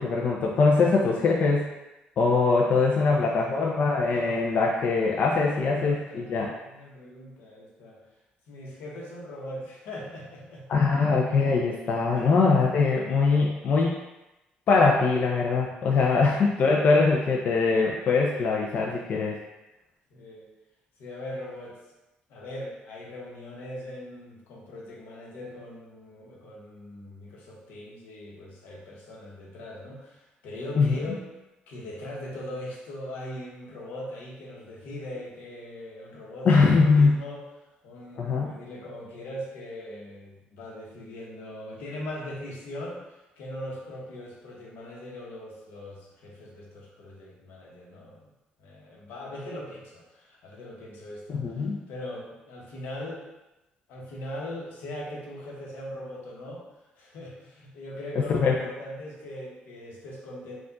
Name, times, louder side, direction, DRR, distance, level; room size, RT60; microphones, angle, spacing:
voice 1, 0.0-1.7 2.2-6.5 10.7-14.0 14.7-19.4 30.8-31.2 36.5-37.2 38.2-38.6 51.3-51.8 58.2-58.5, left 4 dB, 55° left, -1 dB, 0.5 m, -22 dB
voice 2, 2.9-3.5 4.1-4.4 5.2-6.3 6.6-8.0 8.5-10.6 11.0-11.3 12.1-12.4 16.0-16.3 20.1-20.5 21.0-21.8 22.3-31.2 31.7-37.4 37.8-48.3 48.6-53.2 53.9-56.6 57.0-60.6, left 1 dB, 90° left, -2 dB, 1.0 m, -40 dB
4.5 x 2.4 x 3.8 m, 0.99 s
cardioid pair, 120°, 3 cm